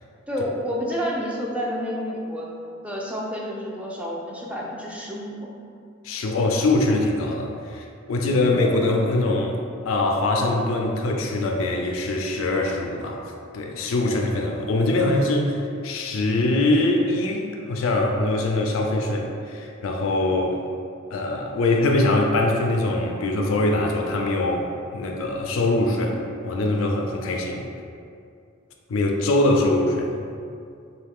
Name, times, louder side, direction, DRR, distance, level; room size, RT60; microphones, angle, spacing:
voice 1, 0.3-2.5 2.8-5.5, equal, 5° right, -4 dB, 0.4 m, -29 dB
voice 2, 6.0-9.6 9.8-13.2 13.5-15.6 15.8-20.6 21.1-27.6 28.9-30.2, left 2 dB, 85° left, 2 dB, 0.4 m, -23 dB
3.1 x 2.2 x 3.5 m, 2.4 s
head